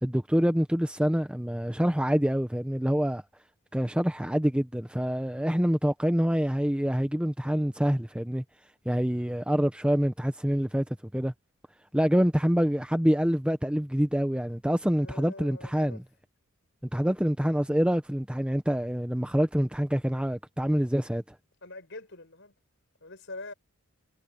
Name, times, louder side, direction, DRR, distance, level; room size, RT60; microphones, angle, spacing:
voice 1, 0.0-3.2 3.7-8.4 8.8-10.9 11.1-11.3 11.9-16.0 16.9-21.2, equal, 5° right, 0.8 m, -26 dB
voice 2, 15.0-16.0 21.6-22.5 23.0-23.5, left 2 dB, 55° left, 6.4 m, -44 dB
head